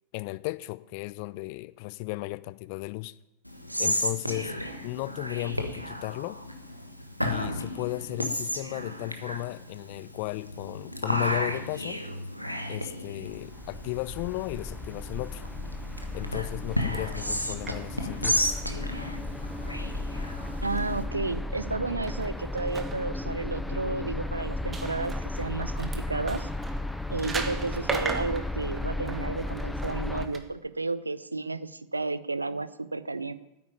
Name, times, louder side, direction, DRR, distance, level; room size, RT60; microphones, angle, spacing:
voice 1, 0.1-3.1 3.8-4.5 4.8-6.4 7.2-12.0 12.7-15.4 16.1-18.4, left 22 dB, 45° left, 17 dB, 0.4 m, -35 dB
Whispering, 3.5-21.0, equal, 90° left, 1.4 m, -33 dB
sound 1, 13.3-30.3, left 2 dB, 5° left, 0.8 m, -35 dB
sound 2, 16.7-30.4, right 4 dB, 20° right, 1.5 m, -41 dB
voice 2, 20.6-26.5 27.1-33.3, right 3 dB, 80° right, 15 dB, 0.6 m, -32 dB
9.4 x 9.2 x 9.0 m, 0.95 s
figure-of-eight pair, 90°, 0 cm